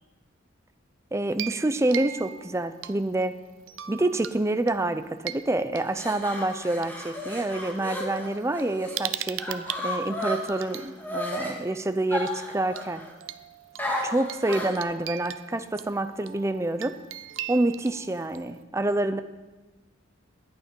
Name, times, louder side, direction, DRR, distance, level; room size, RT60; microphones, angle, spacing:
voice 1, 1.1-3.3 3.9-13.0 14.0-17.0 17.5-19.2, right 2 dB, 15° right, 11 dB, 0.5 m, -27 dB
sound 1, 1.3-3.2 3.7-4.4 4.7-6.9 7.7-7.8 8.2-10.9 12.3-12.4 12.7-12.8 13.2-18.6, right 12 dB, 70° right, 0.5 m, -39 dB
sound 2, 5.8-9.0 9.4-11.5 12.1-13.1 13.8-14.8, left 1 dB, 10° left, 1.8 m, -33 dB
11.5 x 8.9 x 5.3 m, 1.2 s
head